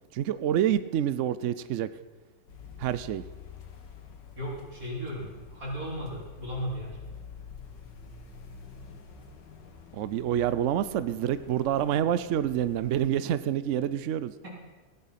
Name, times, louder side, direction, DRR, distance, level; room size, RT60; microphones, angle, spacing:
voice 1, 0.1-1.9 2.8-3.2 9.9-14.3, right 10 dB, 70° right, 14 dB, 0.7 m, -27 dB
sound 1, 2.5-13.0, left 6 dB, 90° left, 2.1 m, -47 dB
voice 2, 4.4-7.0 14.4-14.5, equal, 50° right, -3 dB, 4.3 m, -36 dB
16.0 x 10.5 x 5.8 m, 1.3 s
omnidirectional pair, 1.9 m